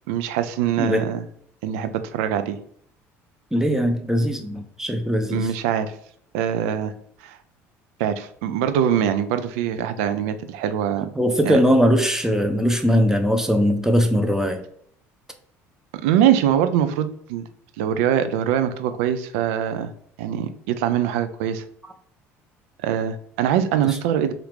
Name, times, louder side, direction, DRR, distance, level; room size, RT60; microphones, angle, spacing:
voice 1, 0.1-1.2 1.6-2.6 5.3-5.9 6.3-6.9 7.2-7.4 8.0-11.1 11.5-11.6 16.0-17.5 17.8-19.9 20.2-21.6 22.8-24.3, right 9 dB, 75° right, 10 dB, 0.3 m, -23 dB
voice 2, 0.8-1.1 3.5-5.5 11.1-14.6 21.8-21.9 23.8-24.0, equal, 5° right, 5 dB, 0.6 m, -20 dB
2.8 x 2.5 x 3.3 m, 0.64 s
hypercardioid pair, 70°, 7 cm